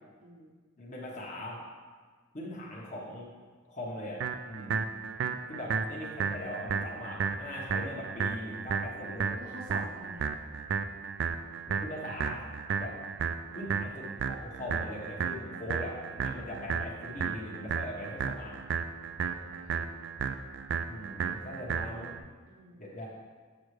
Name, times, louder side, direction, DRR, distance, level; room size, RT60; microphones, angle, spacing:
voice 1, 0.2-0.5 9.4-10.3 16.3-16.7 19.3-19.9 21.2-21.5 22.5-22.8, right 1 dB, 45° right, -5 dB, 0.8 m, -48 dB
voice 2, 0.8-1.6 2.3-3.3 3.7-4.8 5.5-9.4 11.7-12.5 12.8-13.0 13.5-18.6 20.8-22.1 22.8-23.1, left 1 dB, 40° left, -4 dB, 1.1 m, -40 dB
sound 1, 4.2-22.2, right 6 dB, 60° right, 0.3 m, -34 dB
7.5 x 6.4 x 3.2 m, 1.5 s
head